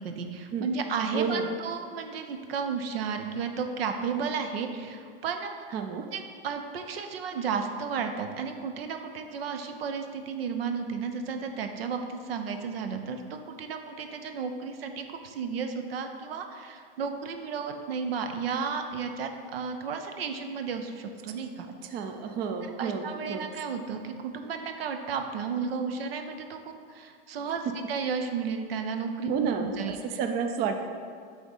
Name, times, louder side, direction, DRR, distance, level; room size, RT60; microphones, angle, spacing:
voice 1, 0.0-5.8 6.1-21.7 22.8-30.2, right 5 dB, 85° right, 6 dB, 0.7 m, -33 dB
voice 2, 1.1-1.5 5.7-6.1 21.8-23.5 29.3-29.7 30.0-30.8, right 6 dB, 35° right, 6 dB, 0.5 m, -30 dB
6.0 x 3.6 x 5.5 m, 2.1 s
hypercardioid pair, 115°, 29 cm